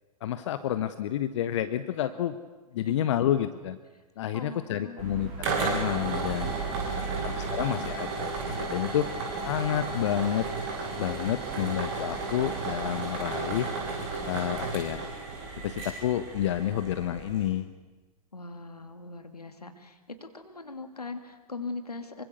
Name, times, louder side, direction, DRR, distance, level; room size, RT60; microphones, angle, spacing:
voice 1, 0.2-2.4 2.7-3.8 4.2-6.5 7.2-9.1 9.4-10.5 11.0-13.7 14.3-15.0 15.6-17.7, left 11 dB, 50° left, 12 dB, 1.0 m, -29 dB
voice 2, 4.3-5.0 6.8-7.9 18.3-22.2, left 3 dB, 80° left, 8 dB, 2.6 m, -41 dB
sound 1, 5.0-17.5, right 4 dB, 40° right, 6.6 m, -33 dB
26.0 x 24.0 x 6.8 m, 1.2 s
figure-of-eight pair, 105°, 20 cm